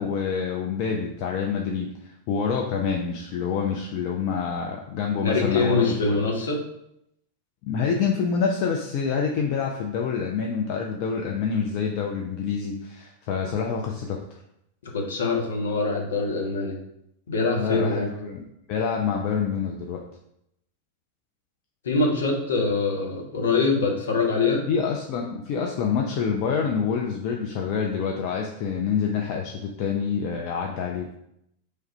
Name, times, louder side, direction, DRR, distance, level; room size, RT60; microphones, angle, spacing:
voice 1, 0.0-6.2 7.6-14.2 17.6-18.4 18.7-20.0 24.7-31.1, left 6 dB, 45° left, 1 dB, 0.4 m, -27 dB
voice 2, 5.2-6.6 14.8-16.8 17.3-18.1 21.8-24.6, left 3 dB, 65° left, 0 dB, 0.8 m, -24 dB
3.2 x 2.4 x 4.1 m, 0.78 s
figure-of-eight pair, 90°, 0 cm